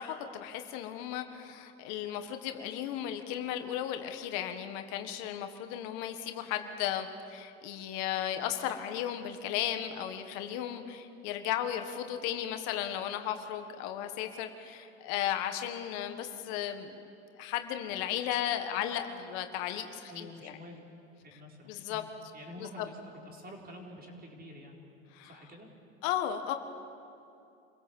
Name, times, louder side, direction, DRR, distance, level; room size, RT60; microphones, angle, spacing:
voice 1, 0.0-17.0 17.4-20.6 21.7-22.0 22.6-22.8 25.1-25.3 26.0-26.6, left 10 dB, 70° left, 7 dB, 1.7 m, -35 dB
voice 2, 20.1-20.8 21.2-22.1 22.3-24.8 25.2-25.7, left 1 dB, 30° right, 0 dB, 4.7 m, -48 dB
27.0 x 16.5 x 7.4 m, 2.7 s
hypercardioid pair, 90°, 31 cm